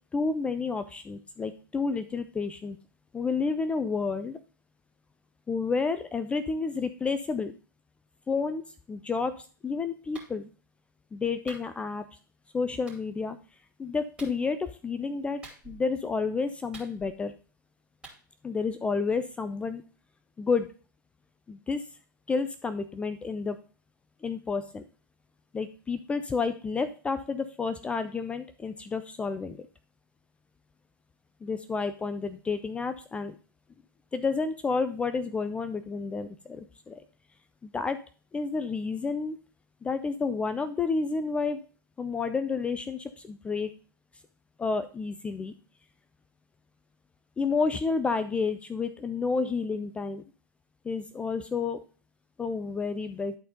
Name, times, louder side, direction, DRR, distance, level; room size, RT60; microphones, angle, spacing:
voice 1, 0.1-2.8 3.1-4.4 5.5-7.5 8.3-8.6 8.9-9.3 9.6-10.5 11.1-12.0 12.5-13.4 13.8-17.3 18.4-19.8 20.4-20.7 21.5-21.8 22.3-23.6 24.2-24.8 25.5-29.6 31.4-33.4 34.1-36.9 37.6-38.0 38.3-39.4 39.8-41.6 42.0-43.7 44.6-45.5 47.4-50.2 50.8-51.8 52.4-53.4, left 4 dB, 10° left, 11 dB, 0.4 m, -30 dB
Clapping, 10.1-10.3 11.5-11.7 12.9-13.0 14.2-14.4 15.4-15.9 16.7-17.3 18.0-18.2, right 3 dB, 10° right, 2.7 m, -47 dB
11.0 x 4.2 x 3.9 m, 0.38 s
figure-of-eight pair, 100°, 11 cm